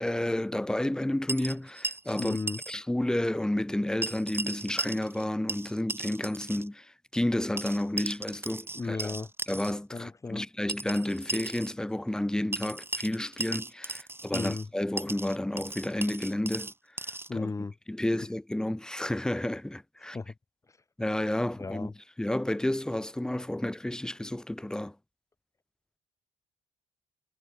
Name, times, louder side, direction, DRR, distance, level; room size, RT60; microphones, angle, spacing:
voice 1, 0.0-2.4 2.7-9.2 9.5-16.7 17.0-17.5 17.9-20.2 21.0-21.9 22.2-25.0, left 1 dB, 5° left, 0.4 m, -31 dB
sound 1, 1.3-2.8 3.0-3.1 4.0-5.2 5.5-6.7 7.6-9.7 10.7-11.7 12.5-14.7 15.0-17.3, right 2 dB, 15° right, 2.4 m, -36 dB
voice 2, 2.2-2.6 8.7-9.3 9.9-10.4 14.3-14.7 17.3-17.7 20.0-20.3 20.7-20.8 21.6-21.9, left 3 dB, 20° left, 1.0 m, -35 dB
supercardioid pair, 60°, 14 cm